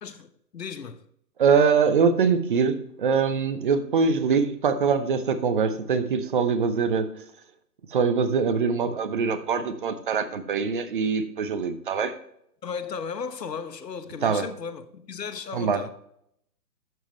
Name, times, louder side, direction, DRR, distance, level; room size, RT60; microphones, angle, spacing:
voice 1, 0.0-1.0 12.6-15.9, left 6 dB, 75° left, 1.2 m, -35 dB
voice 2, 1.4-7.2 7.9-12.2 14.2-14.5 15.5-15.8, right 5 dB, 30° right, 0.8 m, -23 dB
12.0 x 7.3 x 3.1 m
figure-of-eight pair, 145°, 50 cm